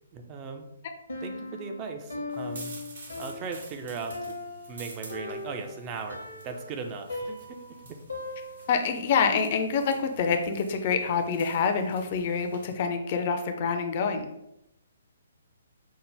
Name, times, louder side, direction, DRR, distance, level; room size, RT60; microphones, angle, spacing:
voice 1, 0.1-0.7 1.2-2.8 3.2-4.3 4.7-8.0, right 5 dB, 25° right, 4 dB, 0.5 m, -38 dB
Piano, 1.1-8.9, left 2 dB, 70° left, 0.8 m, -39 dB
sound 1, 2.3-12.7, right 3 dB, 55° right, 0.8 m, -49 dB
voice 2, 8.7-14.3, left 5 dB, 40° left, 6 dB, 0.5 m, -26 dB
5.3 x 2.1 x 3.3 m, 0.83 s
figure-of-eight pair, 125°, 0 cm